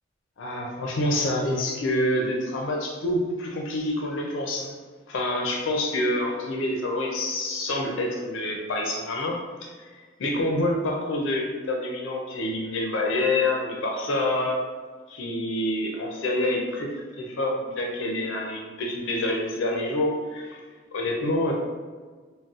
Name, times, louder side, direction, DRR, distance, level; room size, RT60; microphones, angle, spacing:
voice 1, 0.4-4.7 5.1-9.9 10.2-14.6 15.1-20.6 20.9-21.5, left 1 dB, 85° left, 0 dB, 0.5 m, -27 dB
3.9 x 2.1 x 2.4 m, 1.4 s
head